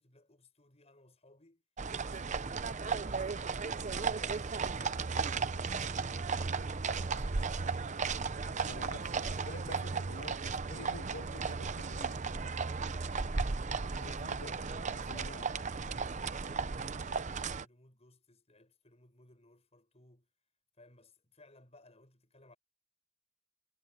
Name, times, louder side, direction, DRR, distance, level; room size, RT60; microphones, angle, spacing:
voice 1, 0.0-1.6 1.9-6.2 6.5-7.9 8.5-8.9 9.2-10.1 12.8-13.0 14.0-20.3 20.8-22.6, left 2 dB, 30° left, 8.0 m, -62 dB
sound 1, 1.8-17.6, right 4 dB, 35° right, 0.7 m, -35 dB
voice 2, 8.6-12.2 13.7-14.6 15.1-15.4, left 2 dB, 70° left, 2.1 m, -49 dB
head